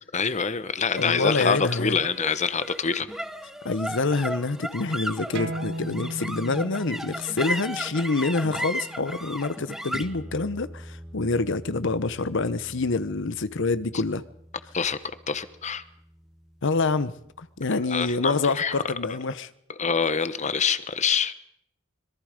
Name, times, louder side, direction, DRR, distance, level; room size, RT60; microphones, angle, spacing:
voice 1, 0.1-3.1 14.7-15.0 15.3-15.8 17.9-18.7 19.8-21.3, left 5 dB, 35° left, 1.0 m, -25 dB
voice 2, 0.9-2.0 3.6-14.2 16.6-17.1 17.4-19.5, left 3 dB, 60° left, 0.9 m, -26 dB
sound 1, 1.0-17.5, equal, ahead, 1.0 m, -37 dB
sound 2, 5.4-10.5, right 1 dB, 60° right, 1.6 m, -38 dB
25.5 x 22.0 x 5.2 m
head